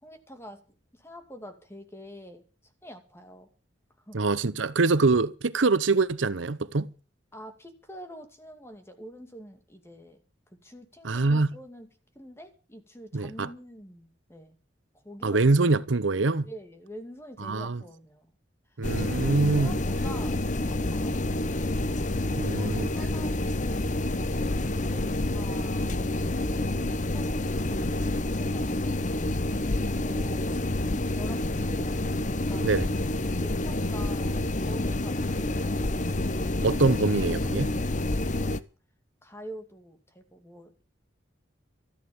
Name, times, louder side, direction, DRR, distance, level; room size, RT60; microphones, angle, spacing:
voice 1, 0.0-3.5 4.0-4.2 7.3-11.9 12.1-14.6 14.9-15.6 16.4-18.3 18.7-18.8 19.4-20.4 20.7-21.6 22.4-23.5 24.0-24.5 24.7-28.9 29.9-30.6 31.1-32.0 32.2-32.8 33.4-35.8 39.2-40.8, equal, 15° left, 2.4 m, -46 dB
voice 2, 4.1-6.9 11.0-11.6 13.1-13.5 15.2-16.5 17.4-17.8 18.8-19.8 22.3-22.9 32.6-32.9 36.6-37.7, right 3 dB, 85° right, 0.8 m, -24 dB
sound 1, 18.8-38.6, left 2 dB, 40° left, 0.8 m, -28 dB
13.5 x 11.5 x 7.1 m
head